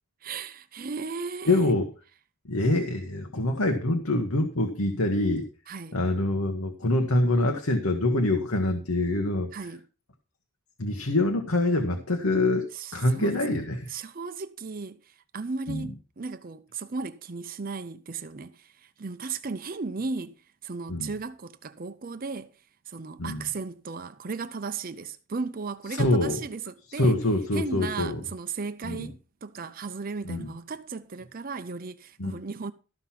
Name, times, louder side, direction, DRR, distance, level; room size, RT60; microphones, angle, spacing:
voice 1, 0.2-1.6 5.7-6.0 9.5-9.8 12.7-13.6 13.9-20.4 20.6-22.5 22.9-27.2 27.5-32.7, right 4 dB, 40° right, 0.6 m, -36 dB
voice 2, 1.5-1.9 2.4-5.4 5.9-9.5 10.8-13.9 15.7-15.9 20.9-21.1 23.2-23.4 25.9-26.4 26.9-28.2 28.8-29.1 30.2-30.5 32.2-32.4, left 1 dB, 85° left, 1.4 m, -25 dB
13.5 x 5.9 x 5.8 m
head